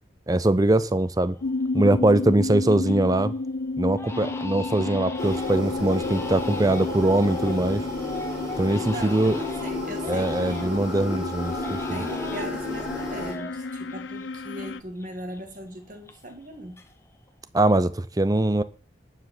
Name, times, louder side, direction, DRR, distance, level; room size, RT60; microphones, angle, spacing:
voice 1, 0.3-1.4 1.7-3.3 3.8-7.8 8.6-9.4 10.1-12.0 17.5-18.6, right 1 dB, 20° right, 0.5 m, -22 dB
Crying sobbing, 0.8-0.9 1.4-1.8 2.2-3.1 3.4-3.5 4.0-10.9 11.4-14.7 15.0-16.5 16.7-17.3, left 2 dB, 15° left, 1.0 m, -40 dB
sound 1, 1.4-14.8, left 3 dB, 80° left, 0.6 m, -32 dB
sound 2, 5.2-13.3, left 2 dB, 5° right, 4.6 m, -33 dB
voice 2, 8.9-10.8 11.9-16.8, right 1 dB, 45° right, 1.9 m, -39 dB
12.0 x 4.9 x 7.8 m
head